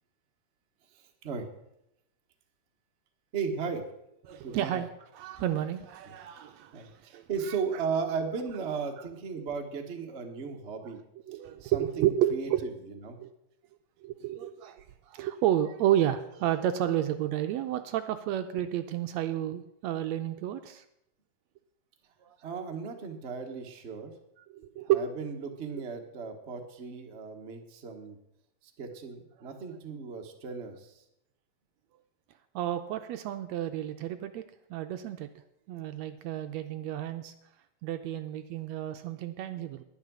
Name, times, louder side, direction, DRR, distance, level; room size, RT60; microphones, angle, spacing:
voice 1, 0.9-1.5 3.3-3.8 4.4-4.8 6.7-11.0 11.3-13.2 22.4-24.1 24.9-28.2 28.6-31.0, right 5 dB, 60° right, 3 dB, 0.6 m, -36 dB
voice 2, 4.3-4.9 5.1-7.5 9.0-9.1 11.3-12.7 13.2-13.3 14.0-20.8 22.2-22.4 24.5-25.0 32.5-34.4 34.7-35.3 35.7-37.3 37.8-39.8, right 11 dB, 80° right, 8 dB, 1.7 m, -31 dB
10.5 x 10.5 x 6.2 m, 0.82 s
omnidirectional pair, 3.5 m